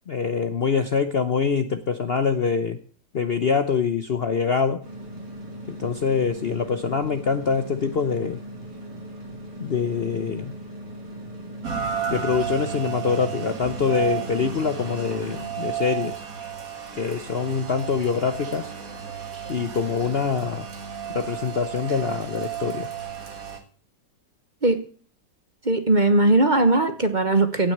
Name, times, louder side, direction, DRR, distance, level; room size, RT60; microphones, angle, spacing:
voice 1, 0.1-2.8 3.1-4.9 5.7-8.4 9.6-10.5 12.1-16.2 17.0-18.7 19.5-20.7 21.1-22.9, left 6 dB, 50° left, 10 dB, 0.8 m, -24 dB
sound 1, 4.8-15.5, right 1 dB, 75° right, 3.7 m, -39 dB
Rain, 11.6-23.6, right 8 dB, 55° right, 2.2 m, -33 dB
voice 2, 25.6-27.7, right 2 dB, 30° right, 8 dB, 1.2 m, -19 dB
17.0 x 6.2 x 8.0 m, 0.43 s
omnidirectional pair, 1.8 m